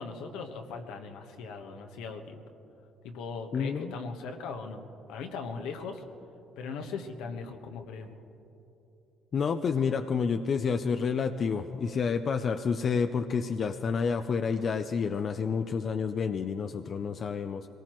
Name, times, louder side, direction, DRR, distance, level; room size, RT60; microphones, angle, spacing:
voice 1, 0.0-2.5 3.0-4.8 5.1-6.0 6.6-8.2, left 4 dB, 85° left, 5 dB, 1.2 m, -39 dB
voice 2, 3.5-4.0 9.3-17.7, left 6 dB, 50° left, 8 dB, 0.5 m, -29 dB
23.0 x 18.0 x 3.1 m, 3.0 s
supercardioid pair, 70°, 0 cm